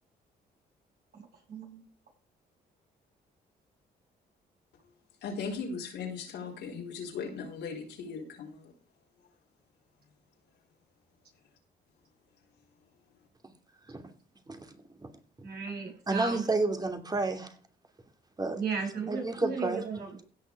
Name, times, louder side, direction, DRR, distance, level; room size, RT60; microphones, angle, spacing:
voice 1, 1.5-1.8 15.4-16.4 18.5-20.2, right 5 dB, 60° right, 7.0 m, -35 dB
voice 2, 5.2-8.7, left 5 dB, 80° left, 4.3 m, -38 dB
voice 3, 16.1-17.5 18.4-18.6 19.1-19.8, right 3 dB, 20° right, 2.8 m, -30 dB
16.5 x 6.3 x 4.8 m
cardioid pair, 80°, 18 cm